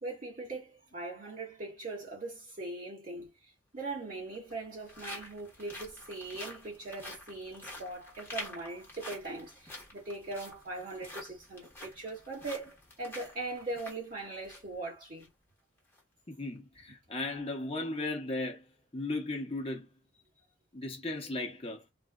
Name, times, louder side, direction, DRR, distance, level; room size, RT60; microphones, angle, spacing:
voice 1, 0.0-3.3 3.7-15.3, right 2 dB, 50° right, 1.9 m, -40 dB
sound 1, 3.2-3.3 4.2-14.8 15.1-15.3 15.8-16.0, left 1 dB, 15° left, 1.1 m, -48 dB
voice 2, 16.3-18.7 18.9-19.9 20.7-21.8, left 2 dB, 30° left, 0.8 m, -36 dB
3.3 x 2.5 x 2.3 m
head